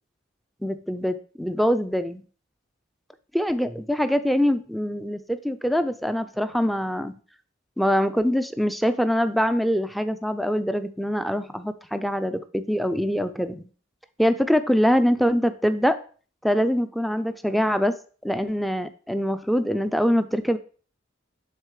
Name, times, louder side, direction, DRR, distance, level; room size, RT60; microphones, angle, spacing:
voice 1, 0.6-2.2 3.3-7.2 7.8-13.7 14.2-16.0 16.4-18.0 18.2-20.6, equal, ahead, 11 dB, 0.3 m, -24 dB
9.9 x 3.7 x 3.1 m, 0.41 s
head